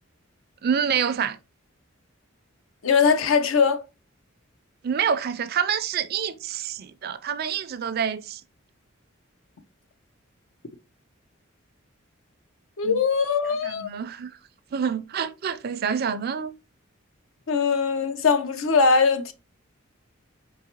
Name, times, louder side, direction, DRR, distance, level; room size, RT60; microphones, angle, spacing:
voice 1, 0.6-1.4 4.8-8.4 12.8-13.0 13.6-14.3 14.7-16.5, right 7 dB, 50° right, 0.4 m, -27 dB
voice 2, 2.8-3.8 12.8-13.9 17.5-19.3, left 5 dB, 80° left, 0.6 m, -21 dB
4.6 x 3.2 x 2.8 m
head